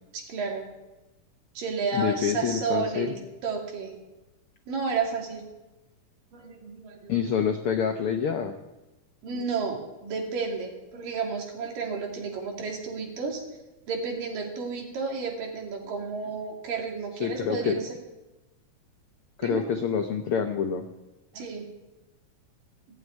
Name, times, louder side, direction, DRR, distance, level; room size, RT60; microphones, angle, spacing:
voice 1, 0.1-0.7 1.6-3.9 4.7-5.5 6.3-7.3 9.2-13.4 13.9-18.0 19.4-19.6 21.3-21.7, right 5 dB, 90° right, 1 dB, 4.4 m, -32 dB
voice 2, 1.9-3.1 7.1-8.5 17.2-17.8 19.4-20.9, left 7 dB, 85° left, 6 dB, 1.2 m, -27 dB
16.0 x 8.7 x 9.5 m, 1.0 s
omnidirectional pair, 3.8 m